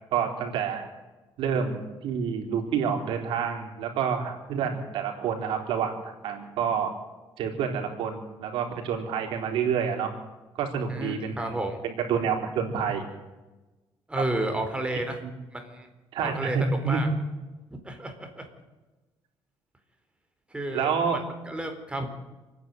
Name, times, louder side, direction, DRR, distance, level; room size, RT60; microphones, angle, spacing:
voice 1, 0.1-0.8 1.4-6.9 7.4-10.1 10.5-11.6 11.8-13.1 15.2-15.3 16.1-17.0 20.7-21.2, right 6 dB, 90° right, 3 dB, 4.1 m, -28 dB
voice 2, 10.9-11.8 14.1-15.2 15.5-15.9 16.2-17.1 17.8-18.5 20.5-21.0 21.5-22.1, right 1 dB, 10° right, 5 dB, 4.2 m, -31 dB
28.0 x 10.0 x 9.4 m, 1.2 s
cardioid pair, 110°, 9 cm